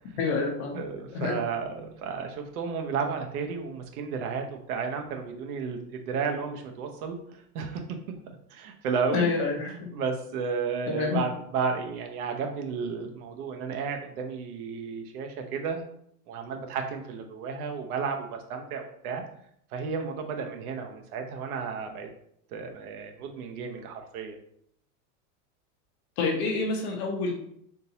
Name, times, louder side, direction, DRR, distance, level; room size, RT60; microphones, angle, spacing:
voice 1, 0.2-0.8 1.1-1.3 9.1-9.7 10.9-11.2 26.2-27.3, left 4 dB, 45° left, 1 dB, 0.9 m, -27 dB
voice 2, 0.7-8.2 8.5-9.3 9.9-15.8 16.3-19.2 19.7-22.1 22.5-24.4, right 5 dB, 70° right, 4 dB, 0.9 m, -33 dB
3.7 x 2.7 x 2.8 m, 0.69 s
supercardioid pair, 155°, 45 cm